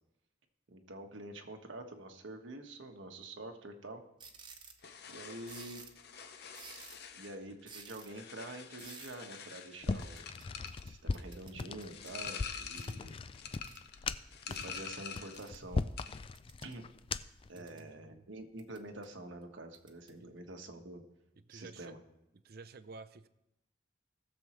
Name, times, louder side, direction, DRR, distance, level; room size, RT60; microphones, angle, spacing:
voice 1, 0.7-4.0 5.1-5.8 7.2-10.3 10.8-13.2 14.5-15.8 16.6-16.8 17.5-21.0 21.5-22.0, right 2 dB, 90° right, 4 dB, 1.4 m, -47 dB
sound 1, 4.2-4.8 5.5-6.0 6.5-7.1 7.7-8.1 8.8-9.2 10.2-12.2 12.8-13.0 13.6-13.8 14.5-14.6 15.3-15.6 16.3-16.8 17.3-17.9 18.6-19.0 19.7-20.1, right 5 dB, 25° right, 1.0 m, -53 dB
sound 2, 4.8-15.5 15.8-16.3, left 7 dB, 55° left, 0.7 m, -47 dB
sound 3, 9.8-17.5, left 4 dB, 30° left, 0.3 m, -39 dB
voice 2, 17.5-18.3 20.2-20.3 21.4-22.0 22.3-23.3, right 3 dB, 55° right, 11 dB, 0.5 m, -52 dB
19.0 x 7.0 x 3.1 m, 0.89 s
head